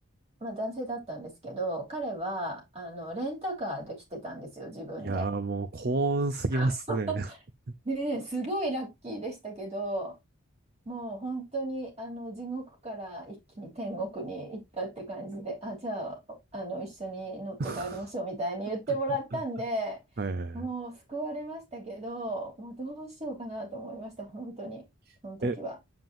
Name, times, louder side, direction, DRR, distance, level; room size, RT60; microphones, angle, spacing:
voice 1, 0.4-5.3 6.5-7.4 7.8-10.1 10.8-20.0 20.5-24.8 25.2-25.8, right 1 dB, 30° right, 3.2 m, -35 dB
voice 2, 5.0-7.3 17.6-18.0 20.2-20.6 25.4-25.6, right 3 dB, 45° right, 0.6 m, -29 dB
7.6 x 7.1 x 2.6 m
head